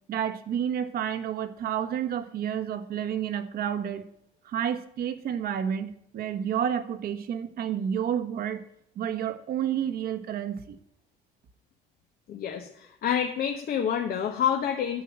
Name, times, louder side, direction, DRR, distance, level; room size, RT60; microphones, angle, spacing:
voice 1, 0.1-4.0 4.4-8.6 8.9-10.8, right 9 dB, 65° right, 8 dB, 1.3 m, -30 dB
voice 2, 12.3-15.0, left 8 dB, 60° left, 4 dB, 1.2 m, -28 dB
10.0 x 7.4 x 7.4 m, 0.75 s
cardioid pair, 110°, 17 cm